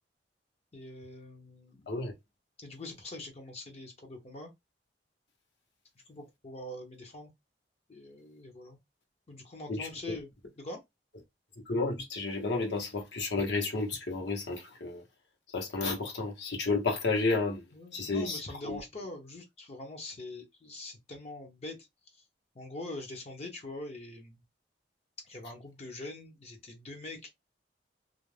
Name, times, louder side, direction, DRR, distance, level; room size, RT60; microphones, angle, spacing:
voice 1, 0.7-2.1 2.6-4.5 6.1-7.3 7.9-8.8 9.3-10.3 10.6-10.8 17.7-21.8 22.1-22.2 22.5-24.4 25.2-27.3, left 2 dB, 35° left, 0.6 m, -44 dB
voice 2, 9.7-10.2 11.7-15.0 15.5-17.6 17.9-18.8, left 3 dB, 70° left, 0.9 m, -31 dB
2.4 x 2.1 x 3.1 m
head